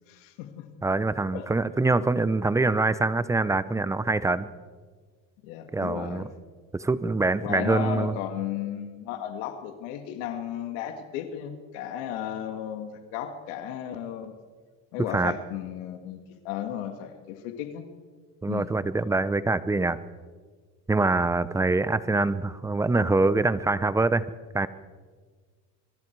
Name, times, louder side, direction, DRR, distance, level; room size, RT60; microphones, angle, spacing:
voice 1, 0.1-0.7 1.3-1.5 5.4-6.3 7.4-14.3 14.9-17.9 18.5-18.7, left 10 dB, 85° left, 6 dB, 2.2 m, -34 dB
voice 2, 0.8-4.5 5.7-6.3 6.7-8.1 15.1-15.3 18.4-20.0 20.9-24.7, right 3 dB, 10° right, 15 dB, 0.6 m, -24 dB
25.5 x 22.5 x 4.7 m, 1.5 s
cardioid pair, 135°, 37 cm